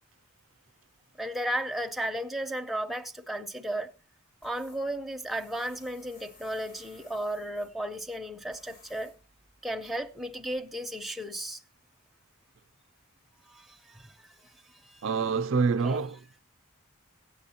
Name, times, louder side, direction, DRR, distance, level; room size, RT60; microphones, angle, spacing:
voice 1, 1.2-3.9 4.4-9.1 9.6-11.6 13.5-15.0 15.8-16.0, right 1 dB, ahead, 0.4 m, -34 dB
Tools, 4.4-10.6, left 2 dB, 85° left, 2.6 m, -59 dB
voice 2, 15.0-16.4, right 5 dB, 60° right, 0.4 m, -27 dB
16.5 x 8.3 x 2.8 m
head